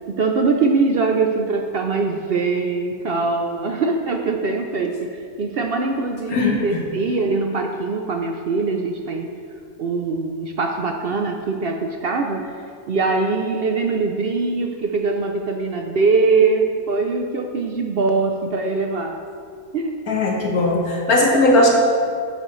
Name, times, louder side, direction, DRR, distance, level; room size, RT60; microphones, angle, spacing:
voice 1, 0.1-9.3 9.8-12.5 12.9-19.2 19.7-20.0, right 4 dB, 55° right, 3 dB, 0.7 m, -22 dB
voice 2, 6.3-6.8 20.1-21.7, left 2 dB, 90° left, -1 dB, 1.9 m, -18 dB
11.0 x 8.3 x 3.2 m, 2.2 s
omnidirectional pair, 1.5 m